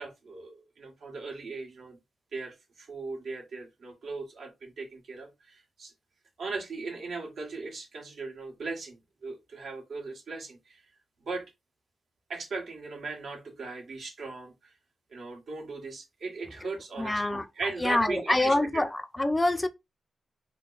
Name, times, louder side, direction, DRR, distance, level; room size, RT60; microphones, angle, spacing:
voice 1, 0.0-2.0 2.3-5.9 6.4-10.8 11.2-11.4 12.3-14.7 15.1-18.8, right 3 dB, 75° right, 1.5 m, -38 dB
voice 2, 17.0-17.5 17.8-19.7, left 2 dB, 20° left, 0.4 m, -26 dB
3.6 x 2.2 x 3.9 m
cardioid pair, 80°, 0 cm